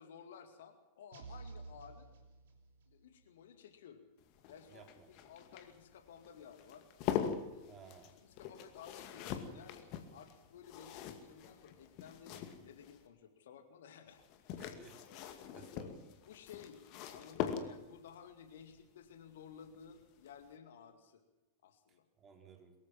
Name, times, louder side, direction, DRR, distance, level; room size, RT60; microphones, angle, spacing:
voice 1, 0.0-2.1 2.9-4.0 4.5-6.8 7.5-7.8 8.2-14.6 15.0-16.0 16.3-16.8 17.1-21.2 21.6-22.1, left 7 dB, 60° left, 8 dB, 2.3 m, -55 dB
sound 1, 1.1-3.0, right 4 dB, 60° right, 3.2 m, -51 dB
sound 2, 4.2-13.0 14.2-18.1 19.7-20.0 20.3-20.4, left 9 dB, 45° left, 2.2 m, -43 dB
voice 2, 4.7-5.3 7.7-8.1 14.6-16.1 21.9-22.7, right 5 dB, 25° right, 3 dB, 4.5 m, -58 dB
23.0 x 15.0 x 7.5 m, 1.0 s
figure-of-eight pair, 90°, 0 cm